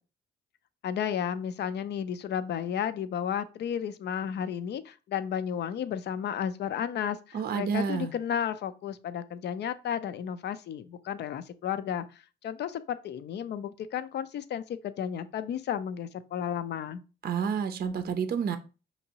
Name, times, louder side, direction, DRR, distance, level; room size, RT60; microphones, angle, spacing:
voice 1, 0.8-12.1 12.4-17.0, left 9 dB, 60° left, 0.5 m, -33 dB
voice 2, 7.3-8.1 17.2-18.6, right 6 dB, 50° right, 0.5 m, -29 dB
5.1 x 2.8 x 2.9 m
cardioid pair, 90°, 20 cm